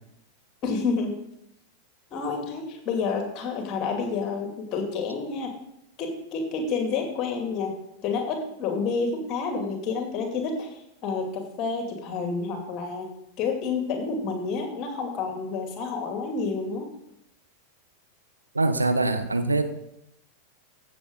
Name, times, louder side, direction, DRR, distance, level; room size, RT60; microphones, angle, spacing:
voice 1, 0.6-1.1 2.1-5.5 6.0-7.8 8.0-10.7 11.0-13.1 13.4-16.9, left 4 dB, 35° left, 3 dB, 2.5 m, -29 dB
voice 2, 18.5-19.6, right 2 dB, 80° right, 9 dB, 0.9 m, -23 dB
15.0 x 7.5 x 3.9 m, 0.79 s
figure-of-eight pair, 90°, 0 cm